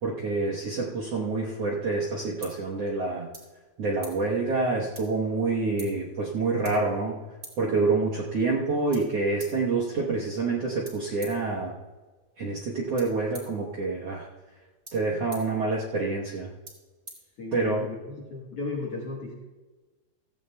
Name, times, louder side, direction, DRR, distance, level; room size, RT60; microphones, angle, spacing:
voice 1, 0.0-3.3 3.8-7.2 7.6-11.7 12.4-14.3 14.9-16.5 17.5-17.8, right 3 dB, 65° right, -2 dB, 1.6 m, -27 dB
sound 1, 1.7-17.9, right 2 dB, 20° right, 2.9 m, -51 dB
voice 2, 17.4-19.3, left 3 dB, 55° left, -1 dB, 1.7 m, -35 dB
16.5 x 15.0 x 2.2 m, 1.2 s
omnidirectional pair, 4.3 m